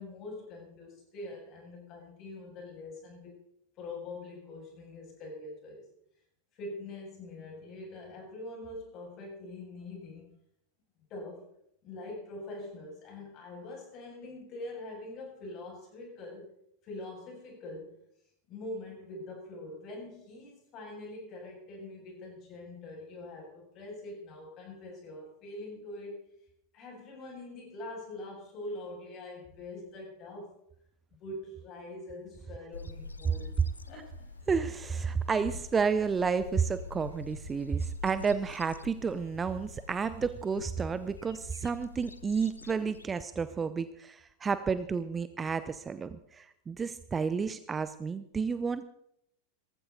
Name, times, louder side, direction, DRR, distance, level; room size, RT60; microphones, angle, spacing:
voice 1, 0.0-3.4 3.8-5.9 6.5-10.3 11.1-11.5 11.8-16.5 16.8-17.9 18.5-26.3 26.7-30.6 31.1-33.6 33.9-34.4, left 2 dB, 35° left, 0 dB, 7.1 m, -44 dB
sound 1, 32.7-43.1, left 3 dB, 80° left, 0.7 m, -46 dB
voice 2, 34.5-48.8, right 5 dB, 20° right, 14 dB, 0.6 m, -31 dB
17.5 x 15.0 x 4.1 m, 0.73 s
figure-of-eight pair, 90°, 0 cm